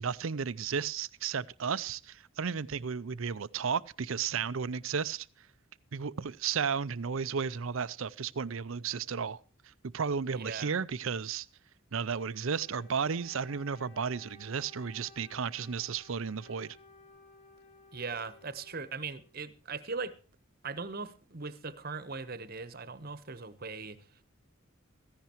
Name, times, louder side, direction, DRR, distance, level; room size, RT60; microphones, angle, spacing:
voice 1, 0.0-5.3 5.9-9.4 9.9-11.5 11.9-16.8, right 6 dB, 70° right, 0.6 m, -33 dB
voice 2, 10.3-10.7 17.9-20.2 20.6-24.0, right 4 dB, 45° right, 1.1 m, -39 dB
Wind instrument woodwind instrument, 12.1-19.7, left 3 dB, 45° left, 4.4 m, -58 dB
16.0 x 15.0 x 3.1 m
head